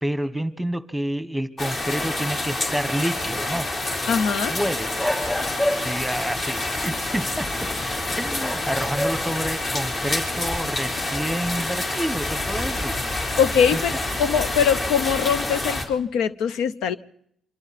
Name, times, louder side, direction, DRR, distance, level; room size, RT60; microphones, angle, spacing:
voice 1, 0.0-3.7 4.5-4.9 5.8-7.5 8.2-13.0 13.7-13.8, right 1 dB, ahead, 14 dB, 1.3 m, -28 dB
sound 1, 1.6-15.8, left 2 dB, 45° left, 4.7 m, -27 dB
voice 2, 4.1-4.5 13.4-13.9 14.2-17.0, left 7 dB, 85° left, 15 dB, 0.8 m, -22 dB
sound 2, 4.9-6.1 7.6-7.9 8.4-9.5 9.9-10.0 12.4-12.5 14.1-14.4, left 1 dB, 15° left, 4.0 m, -28 dB
27.0 x 24.5 x 4.3 m, 0.69 s
cardioid pair, 90°, 0 cm